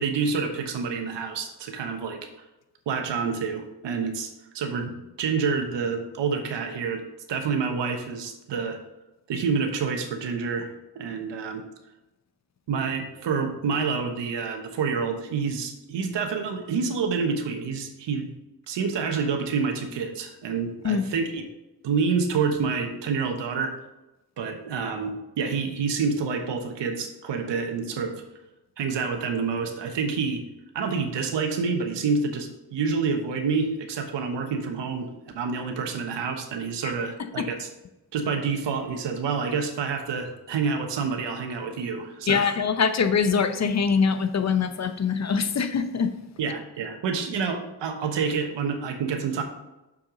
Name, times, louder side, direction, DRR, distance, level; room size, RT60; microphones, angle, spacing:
voice 1, 0.0-2.3 2.9-4.3 4.5-4.9 5.2-7.0 7.3-8.8 9.3-10.7 10.9-11.6 12.7-18.3 18.7-21.4 21.8-23.7 24.4-28.1 28.8-30.4 30.7-35.1 35.3-37.7 38.1-42.6 46.4-49.4, right 5 dB, 85° right, 5 dB, 1.2 m, -28 dB
voice 2, 42.3-46.2, left 6 dB, 40° left, 10 dB, 0.7 m, -23 dB
6.7 x 6.0 x 3.9 m, 0.98 s
cardioid pair, 85°, 42 cm